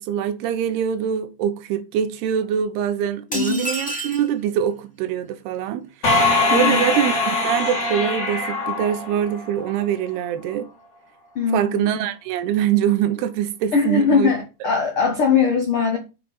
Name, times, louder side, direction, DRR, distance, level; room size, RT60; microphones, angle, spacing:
voice 1, 0.0-10.7 11.5-14.3, right 9 dB, 85° right, 3.0 m, -24 dB
voice 2, 3.3-3.7 6.5-6.9 11.3-11.9 13.7-16.0, left 5 dB, 90° left, 1.1 m, -20 dB
sound 1, 3.3-4.3, right 1 dB, 5° left, 1.9 m, -29 dB
sound 2, 6.0-9.7, left 2 dB, 30° left, 3.0 m, -22 dB
8.4 x 5.8 x 5.4 m
omnidirectional pair, 4.5 m